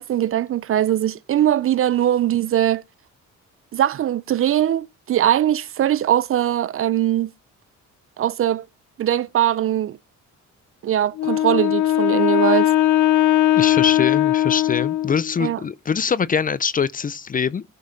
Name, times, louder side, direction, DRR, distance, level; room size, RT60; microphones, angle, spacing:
voice 1, 0.0-2.8 3.7-7.3 8.2-8.7 9.0-10.0 10.8-12.7 15.4-15.6, right 11 dB, 45° right, 0.4 m, -21 dB
Wind instrument woodwind instrument, 11.2-15.4, left 13 dB, 75° left, 0.6 m, -19 dB
voice 2, 13.6-17.6, left 6 dB, 30° left, 0.5 m, -23 dB
16.0 x 5.4 x 3.9 m
cardioid pair, 90°, 30 cm